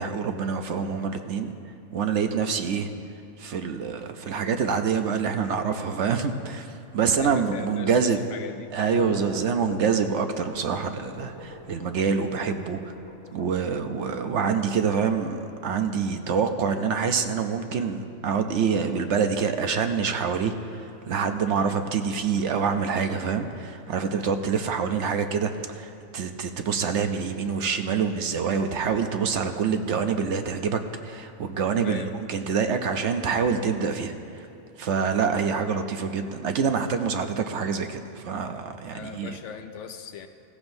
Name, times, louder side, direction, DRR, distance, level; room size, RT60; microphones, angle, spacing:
voice 1, 0.0-1.5 1.9-2.9 3.4-6.7 6.9-8.2 8.7-12.8 13.3-20.6 21.1-32.0 32.3-34.5 34.8-39.4, right 6 dB, 65° right, 7 dB, 0.9 m, -26 dB
voice 2, 7.2-8.7 21.5-21.9 31.8-32.1 38.9-40.3, left 7 dB, 65° left, 8 dB, 0.8 m, -39 dB
sound 1, 8.6-17.7, left 2 dB, 85° left, 1.6 m, -43 dB
16.5 x 15.0 x 2.6 m, 2.6 s
omnidirectional pair, 1.5 m